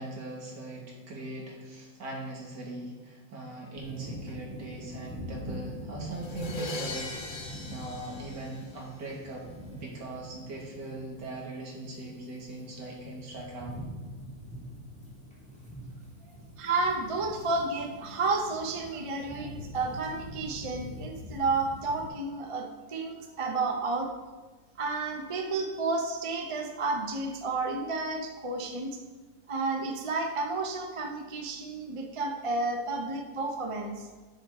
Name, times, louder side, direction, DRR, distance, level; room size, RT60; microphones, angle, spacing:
voice 1, 0.0-7.2 7.7-13.8, right 2 dB, 65° right, -2 dB, 2.6 m, -40 dB
sound 1, 3.7-22.1, left 1 dB, 5° left, 2.3 m, -44 dB
sound 2, 6.2-9.1, left 2 dB, 35° left, 0.9 m, -40 dB
voice 2, 16.6-24.1 24.8-29.0 29.5-34.1, right 3 dB, 30° right, 3 dB, 0.6 m, -31 dB
9.4 x 9.0 x 3.7 m, 1.3 s
omnidirectional pair, 2.0 m